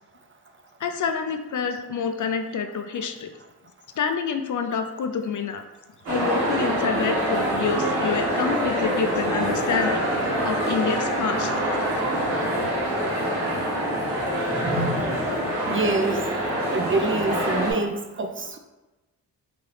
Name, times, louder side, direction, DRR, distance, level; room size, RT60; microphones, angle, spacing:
voice 1, 0.8-3.3 4.0-5.6 6.1-10.1 10.4-11.5, left 6 dB, 45° left, 7 dB, 0.5 m, -27 dB
sound 1, 6.1-17.7, equal, 85° right, 1.3 m, -25 dB
voice 2, 15.7-16.2 16.7-18.6, right 3 dB, 30° right, 5 dB, 0.5 m, -26 dB
3.2 x 2.7 x 3.9 m, 1.1 s
supercardioid pair, 40°, 43 cm